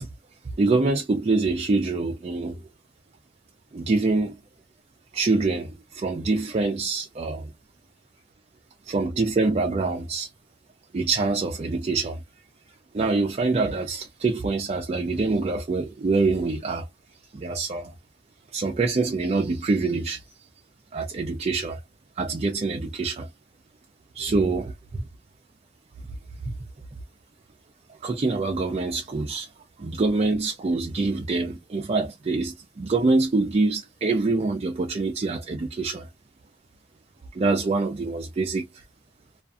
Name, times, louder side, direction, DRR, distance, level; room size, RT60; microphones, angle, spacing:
voice 1, 0.6-2.6 3.7-4.4 5.1-7.5 8.9-10.3 10.9-12.2 12.9-16.9 17.3-17.9 18.5-20.2 20.9-21.8 22.2-23.3 24.1-25.0 26.5-26.6 28.0-29.5 29.8-36.1 37.3-38.8, right 3 dB, 35° right, 0.4 m, -25 dB
2.5 x 2.3 x 2.3 m
head